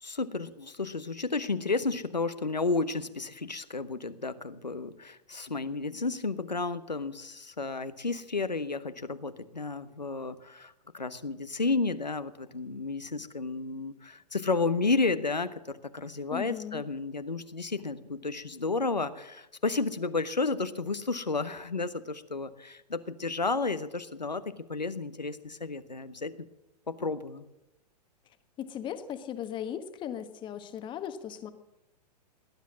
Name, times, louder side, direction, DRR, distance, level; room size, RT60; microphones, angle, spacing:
voice 1, 0.0-15.6 15.9-24.4 24.7-26.4 26.9-27.4, left 3 dB, 85° left, 11 dB, 1.1 m, -32 dB
voice 2, 16.3-16.8 28.6-31.5, left 9 dB, 20° left, 9 dB, 1.3 m, -37 dB
18.5 x 10.5 x 7.4 m, 0.92 s
figure-of-eight pair, 110°, 21 cm